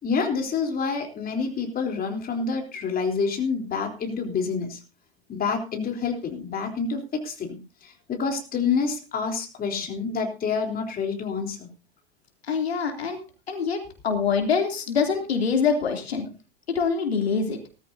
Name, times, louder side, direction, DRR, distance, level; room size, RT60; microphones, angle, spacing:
voice 1, 0.0-4.8 5.3-11.7, left 5 dB, 30° left, 3 dB, 3.7 m, -28 dB
voice 2, 12.5-13.2 13.5-16.2 16.7-17.6, left 5 dB, 80° left, 3 dB, 3.1 m, -25 dB
18.5 x 14.0 x 2.8 m, 0.32 s
hypercardioid pair, 90°, 31 cm